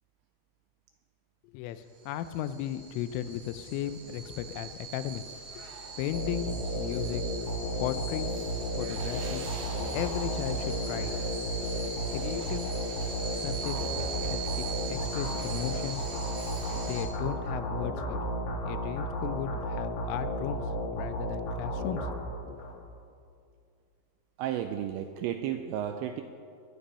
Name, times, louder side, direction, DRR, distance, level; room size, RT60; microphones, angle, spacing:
voice 1, 1.4-5.2 5.6-5.7 6.0-7.2 7.8-8.3 8.7-9.4 9.9-11.1 12.1-12.7 13.3-13.9 14.2-16.0 16.7-18.2 18.6-20.6 20.9-22.1 22.5-22.6, left 11 dB, 85° left, 12 dB, 3.2 m, -36 dB
sound 1, 2.0-17.1, right 3 dB, 65° right, 1.6 m, -40 dB
sound 2, 6.1-22.7, equal, 60° left, 4.0 m, -33 dB
voice 2, 24.4-26.2, right 10 dB, 85° right, 7 dB, 2.6 m, -33 dB
20.5 x 9.8 x 5.5 m, 2.3 s
omnidirectional pair, 5.7 m